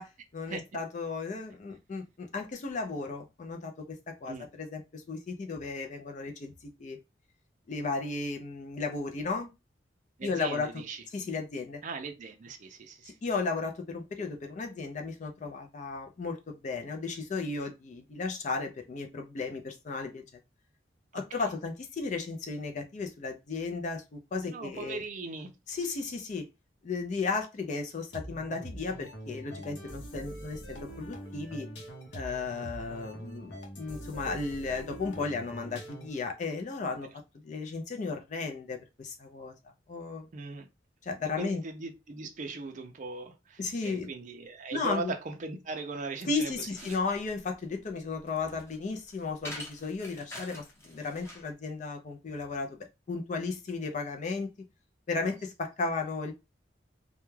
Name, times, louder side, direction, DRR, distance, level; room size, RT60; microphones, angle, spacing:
voice 1, 0.0-7.0 7.7-9.5 10.2-10.7 11.1-11.8 13.2-20.2 21.1-25.0 25.7-26.5 26.8-31.7 32.1-37.1 37.4-39.5 39.9-40.3 41.0-41.6 43.6-44.1 44.7-45.1 46.3-54.5 55.1-56.3, left 4 dB, 45° left, 0.4 m, -35 dB
voice 2, 10.2-11.0 11.8-13.1 21.1-21.4 24.5-25.5 40.3-40.7 41.4-47.0, right 3 dB, 45° right, 0.4 m, -39 dB
sound 1, 28.1-36.3, right 1 dB, 70° left, 0.7 m, -43 dB
sound 2, 46.4-51.5, left 1 dB, 15° left, 0.8 m, -46 dB
2.2 x 2.1 x 3.1 m
head